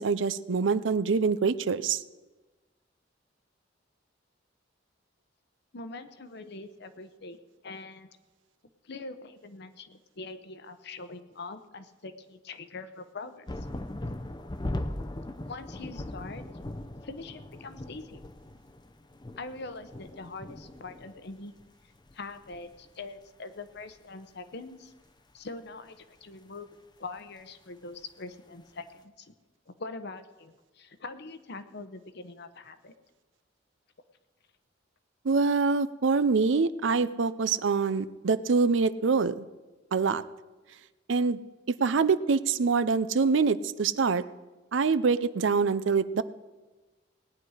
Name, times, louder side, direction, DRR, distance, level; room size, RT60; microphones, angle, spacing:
voice 1, 0.0-2.0 35.2-39.4 39.9-40.2 41.1-41.4 41.7-44.2 44.7-46.2, right 4 dB, 75° right, 15 dB, 0.5 m, -25 dB
voice 2, 5.7-7.4 7.6-8.1 8.8-13.7 15.5-16.5 17.0-18.2 19.4-21.5 22.1-24.9 25.3-26.7 27.0-29.3 29.7-32.9, left 3 dB, 60° left, 10 dB, 0.9 m, -43 dB
sound 1, 13.5-21.3 21.6-21.7 22.0-22.9 23.8-23.9, left 1 dB, 25° left, 0.6 m, -39 dB
19.0 x 9.5 x 4.9 m, 1.2 s
head